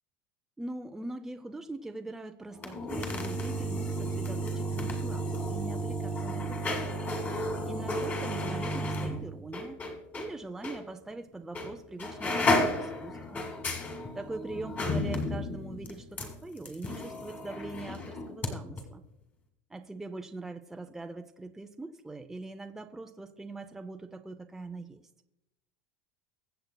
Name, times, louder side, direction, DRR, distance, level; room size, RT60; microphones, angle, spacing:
voice 1, 0.6-6.9 7.7-9.8 10.1-13.5 14.1-19.0 19.7-25.0, right 2 dB, 5° right, 6 dB, 0.5 m, -42 dB
sound 1, 2.5-10.3 10.6-10.8 11.5-11.7 12.0-18.5 18.8-18.9, left 1 dB, 25° left, 2.0 m, -32 dB
23.0 x 7.8 x 2.2 m, 0.90 s
supercardioid pair, 135°, 7 cm